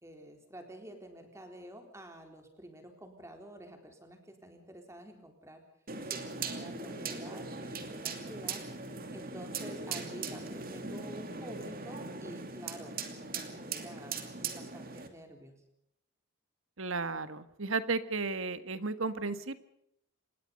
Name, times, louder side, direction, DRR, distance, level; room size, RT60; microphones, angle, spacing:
voice 1, 0.0-5.6 6.0-8.6 9.1-15.6, right 1 dB, 15° right, 4 dB, 3.8 m, -49 dB
sound 1, 5.9-15.1, right 4 dB, 45° right, 2.7 m, -40 dB
voice 2, 16.8-19.6, right 4 dB, 70° right, 12 dB, 1.5 m, -34 dB
26.5 x 21.0 x 5.3 m, 0.76 s
head